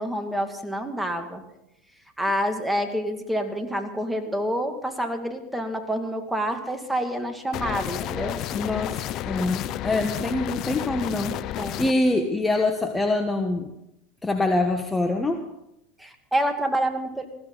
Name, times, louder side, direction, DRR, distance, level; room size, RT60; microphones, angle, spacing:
voice 1, 0.0-1.4 2.2-8.4 8.8-9.0 9.5-9.6 11.6-11.8 16.0-17.3, equal, 5° right, 4 dB, 2.3 m, -28 dB
sound 1, 7.5-11.9, left 13 dB, 50° left, 0.6 m, -31 dB
voice 2, 8.5-13.7 14.2-15.4, left 2 dB, 15° left, 5 dB, 1.4 m, -25 dB
20.0 x 16.0 x 4.1 m, 0.84 s
hypercardioid pair, 105°, 0 cm